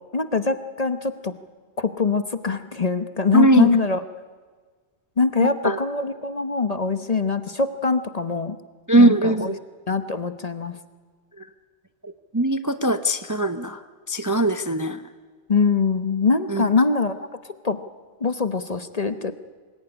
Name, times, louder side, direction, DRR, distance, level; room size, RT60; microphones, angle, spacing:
voice 1, 0.1-1.3 1.8-4.0 5.2-8.6 8.9-9.5 9.9-10.7 15.5-17.3 17.6-17.8 18.2-19.3, left 4 dB, 35° left, 11 dB, 1.0 m, -23 dB
voice 2, 3.3-3.7 5.4-5.8 8.9-9.6 11.4-11.5 12.0-13.8 14.1-15.0 16.5-16.7, right 1 dB, 20° right, 10 dB, 0.7 m, -20 dB
25.5 x 20.0 x 9.9 m, 1.5 s
omnidirectional pair, 1.2 m